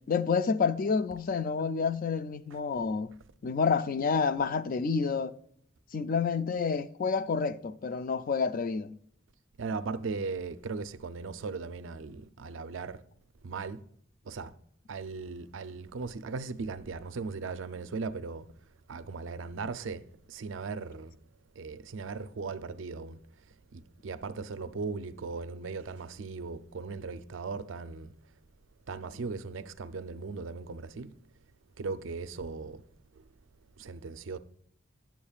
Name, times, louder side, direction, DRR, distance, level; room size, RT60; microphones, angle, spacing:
voice 1, 0.1-3.1 3.4-5.4 5.9-8.9, left 5 dB, 45° left, 0.4 m, -29 dB
voice 2, 9.6-13.0 13.4-13.8 14.2-14.5 14.9-18.5 18.9-21.2 21.6-23.2 23.7-28.1 28.9-31.1 31.8-32.8 33.2-33.3 33.8-34.4, right 4 dB, 70° right, 0.5 m, -38 dB
10.5 x 7.3 x 2.3 m
head